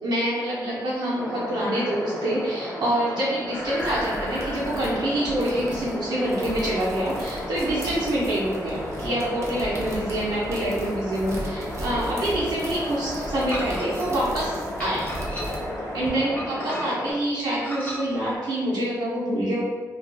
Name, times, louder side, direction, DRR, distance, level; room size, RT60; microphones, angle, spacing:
voice 1, 0.0-15.1 15.9-19.6, right 1 dB, 80° right, -8 dB, 0.6 m, -26 dB
sound 1, 1.2-17.1, left 1 dB, 60° left, 0.7 m, -34 dB
sound 2, 3.5-16.1, right 1 dB, 40° right, 0.5 m, -37 dB
sound 3, 13.5-14.1 14.8-15.7 16.4-17.1 17.6-18.0, equal, 25° left, 0.6 m, -35 dB
2.5 x 2.3 x 2.5 m, 1.4 s
wide cardioid pair, 125°, 7 cm